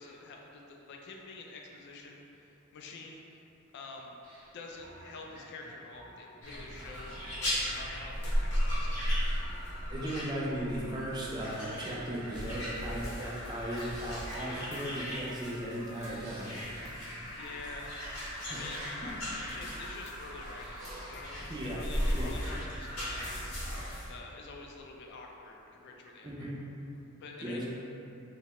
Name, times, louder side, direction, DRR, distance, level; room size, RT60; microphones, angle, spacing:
voice 1, 0.0-3.4 3.7-4.2 4.5-9.4 17.3-17.9 18.5-26.5 27.2-27.7, left 3 dB, 55° left, 1 dB, 0.3 m, -48 dB
sound 1, 4.2-8.5 8.8-10.8 11.1-13.1 13.4-15.4 15.6-17.7 17.9-19.9 20.2-22.2 22.5-22.9, right 1 dB, 75° right, 0.8 m, -52 dB
sound 2, 6.4-24.1, equal, 75° left, 0.8 m, -36 dB
voice 2, 9.9-16.5 17.6-17.9 18.5-18.6 19.0-19.1 21.5-21.8 22.1-22.3 26.2-26.6 27.4-27.7, right 1 dB, 20° right, -5 dB, 0.4 m, -37 dB
2.7 x 2.1 x 2.9 m, 2.8 s
head